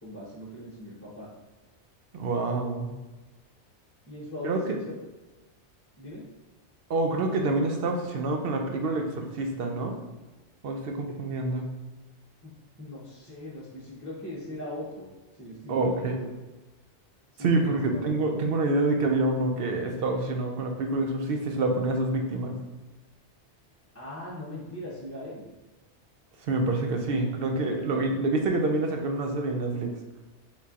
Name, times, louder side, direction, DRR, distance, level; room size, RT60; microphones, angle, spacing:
voice 1, 0.0-1.3 4.1-4.8 5.9-6.2 11.1-11.2 12.4-12.5 12.8-15.1 15.3-16.3 17.3-18.1 23.9-25.5 27.7-28.2, left 1 dB, 15° left, -7 dB, 0.7 m, -40 dB
voice 2, 2.1-2.9 4.4-4.8 6.9-10.0 10.6-11.7 15.7-16.1 17.4-22.6 26.4-29.9, right 2 dB, 65° right, 3 dB, 0.7 m, -27 dB
4.2 x 3.8 x 2.4 m, 1.1 s
omnidirectional pair, 1.2 m